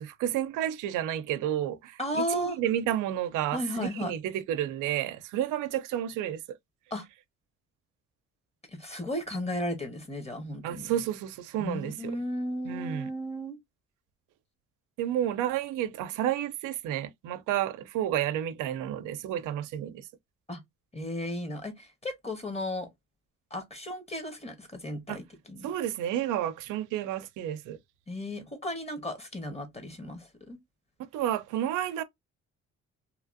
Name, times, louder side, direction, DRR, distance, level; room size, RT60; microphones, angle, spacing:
voice 1, 0.0-6.4 10.6-12.1 12.7-13.1 15.0-20.0 25.1-25.2 25.6-27.8 31.1-32.0, right 11 dB, 90° right, 0.5 m, -31 dB
voice 2, 2.0-2.6 3.5-4.1 6.9-7.0 8.7-10.9 11.6-13.6 20.5-20.6 20.9-22.9 23.5-25.7 28.1-30.6, left 1 dB, 20° left, 1.1 m, -35 dB
2.9 x 2.4 x 2.5 m
cardioid pair, 90°, 30 cm